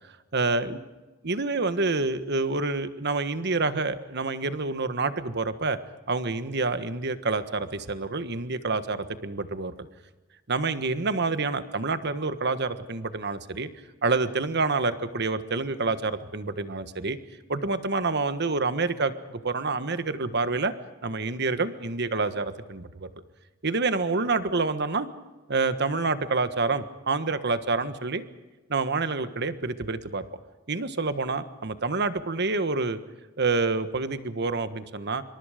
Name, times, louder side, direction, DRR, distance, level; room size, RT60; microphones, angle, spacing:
voice 1, 0.3-0.8 1.2-5.8 6.1-9.9 10.5-13.7 14.0-17.2 17.5-20.7 21.0-23.1 23.6-25.1 25.5-28.2 28.7-30.2 30.7-33.0 33.4-35.2, right 3 dB, 55° right, 11 dB, 1.5 m, -27 dB
27.0 x 25.0 x 5.1 m, 1.2 s
head